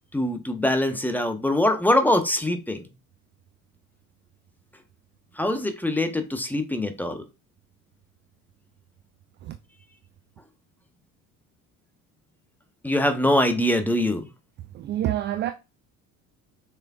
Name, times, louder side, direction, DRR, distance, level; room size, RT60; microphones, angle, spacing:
voice 1, 0.1-2.8 5.4-7.2 12.8-14.3, left 1 dB, 5° left, 0.7 m, -23 dB
voice 2, 14.7-15.5, right 12 dB, 25° right, 0.3 m, -27 dB
6.4 x 3.6 x 2.3 m
figure-of-eight pair, 60°, 46 cm